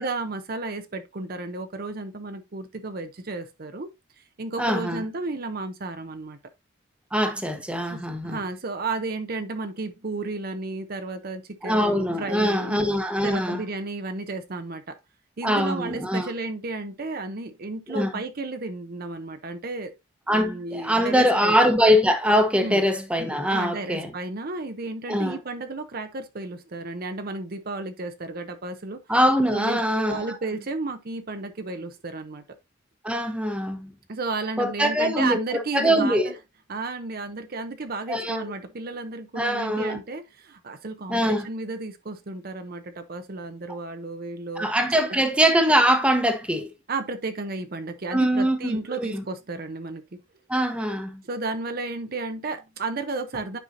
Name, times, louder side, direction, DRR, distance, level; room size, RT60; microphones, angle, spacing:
voice 1, 0.0-3.9 4.4-6.4 7.9-12.8 13.2-15.0 15.4-19.9 20.3-21.5 22.6-22.8 23.5-29.0 29.5-29.8 30.1-32.4 34.1-36.3 36.7-44.7 46.9-50.0 51.3-53.6, right 3 dB, 50° right, 0.7 m, -33 dB
voice 2, 4.6-5.0 7.1-8.4 11.6-13.6 15.4-16.3 17.9-18.1 20.3-24.1 25.1-25.4 29.1-30.4 33.0-33.9 34.6-35.4 35.7-36.3 38.1-38.5 39.4-40.0 41.1-41.5 44.6-46.7 48.1-49.2 50.5-51.2, equal, 5° right, 0.9 m, -23 dB
9.1 x 5.5 x 2.6 m
head